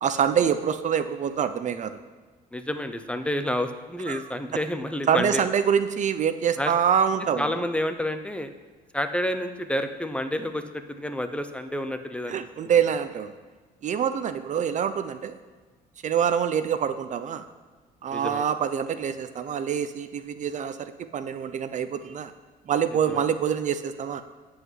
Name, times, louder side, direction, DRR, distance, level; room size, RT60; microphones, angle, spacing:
voice 1, 0.0-2.0 4.1-4.3 5.1-7.6 12.3-13.3 13.8-15.3 16.0-17.4 18.0-22.3 22.7-24.2, right 8 dB, 45° right, 11 dB, 0.7 m, -25 dB
voice 2, 2.5-5.4 6.6-6.7 7.4-8.5 8.9-12.3 12.6-12.7 18.1-18.5 23.1-23.2, left 1 dB, 5° left, 8 dB, 0.8 m, -29 dB
13.5 x 5.0 x 8.1 m, 1.3 s
cardioid pair, 110°, 17 cm